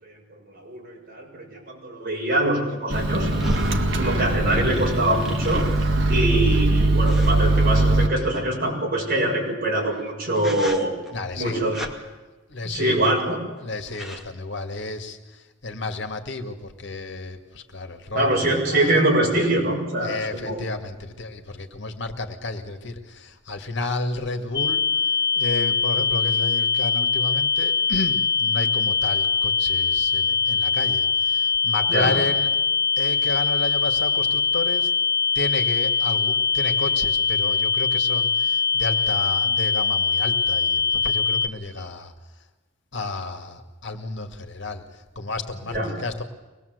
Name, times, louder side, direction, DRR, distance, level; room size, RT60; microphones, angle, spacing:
voice 1, 0.0-3.3 4.0-5.7 6.1-10.9 11.4-11.8 12.6-13.4 18.1-20.6 31.9-32.1 45.7-45.9, right 1 dB, 50° right, -1 dB, 6.8 m, -24 dB
Microwave oven, 2.9-8.1, right 2 dB, 65° right, 2.0 m, -21 dB
sound 1, 3.3-6.1 7.1-8.4 9.8-10.0 10.4-11.1 11.7-11.9 12.9-13.3 13.6-13.7 13.9-14.2, equal, ahead, 2.2 m, -36 dB
voice 2, 11.1-11.6 12.5-13.1 13.6-19.0 20.0-24.9 25.4-32.5 33.0-34.9 35.4-42.1 42.9-46.2, left 2 dB, 65° left, 6 dB, 2.2 m, -32 dB
sound 2, 24.5-41.5, left 5 dB, 20° left, 1.3 m, -22 dB
24.5 x 20.0 x 8.1 m, 1.2 s
head